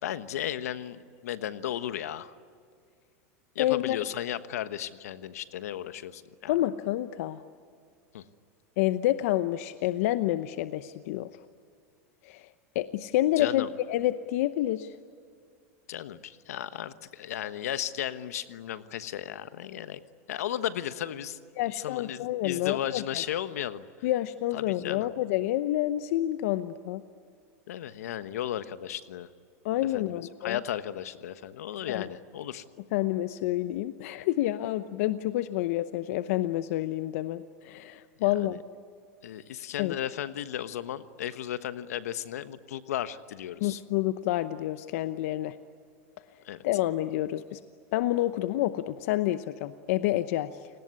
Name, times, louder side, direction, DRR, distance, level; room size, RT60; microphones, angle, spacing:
voice 1, 0.0-2.3 3.5-6.5 8.1-8.2 13.4-13.7 15.9-20.0 20.3-21.4 21.7-23.9 24.5-25.1 27.7-29.3 29.9-32.6 38.2-38.6 39.2-43.8 46.4-46.6, left 11 dB, 85° left, 13 dB, 1.2 m, -35 dB
voice 2, 3.6-4.0 6.5-7.4 8.8-11.3 12.2-12.5 12.7-15.0 21.6-23.2 24.0-27.0 29.6-30.6 31.9-32.1 32.9-38.6 39.8-39.9 43.6-45.6 46.6-47.6 47.9-50.7, left 14 dB, 70° left, 12 dB, 0.9 m, -28 dB
29.0 x 19.0 x 9.7 m, 2.3 s
supercardioid pair, 120°, 8 cm